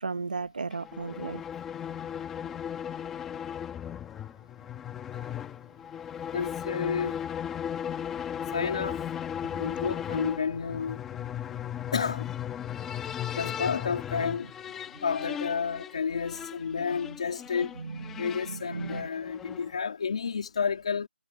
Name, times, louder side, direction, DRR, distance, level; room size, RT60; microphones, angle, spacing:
voice 1, 0.0-1.4 17.8-19.1, right 4 dB, 45° right, 1.0 m, -35 dB
sound 1, 0.7-19.8, left 9 dB, 5° left, 1.4 m, -36 dB
voice 2, 6.3-7.1 8.5-9.0 9.5-11.0 11.9-12.3 13.3-14.5 15.0-17.7 18.2-21.1, left 6 dB, 35° left, 2.7 m, -30 dB
hypercardioid pair, 180°, 6 cm